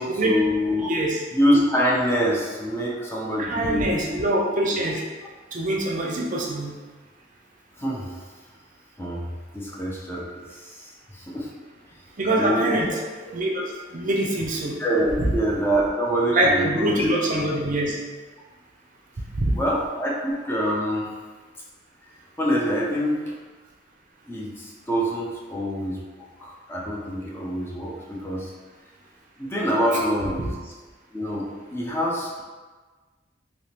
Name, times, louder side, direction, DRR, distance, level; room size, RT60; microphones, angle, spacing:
voice 1, 0.0-0.9 1.3-4.2 4.7-4.8 7.8-8.2 9.0-9.2 9.5-10.8 11.1-11.5 12.4-12.8 14.8-17.1 17.3-17.5 19.6-21.1 22.4-23.2 24.3-26.0 26.4-28.5 29.4-30.5 31.1-32.4, equal, 10° left, -4 dB, 0.4 m, -25 dB
voice 2, 0.9-1.2 3.4-5.0 5.5-6.8 12.2-13.0 13.3-13.6 13.9-14.8 15.2-15.3 16.3-18.0 19.3-19.6 30.4-30.5, right 1 dB, 45° right, -1 dB, 0.5 m, -24 dB
3.5 x 2.8 x 2.8 m, 1.4 s
head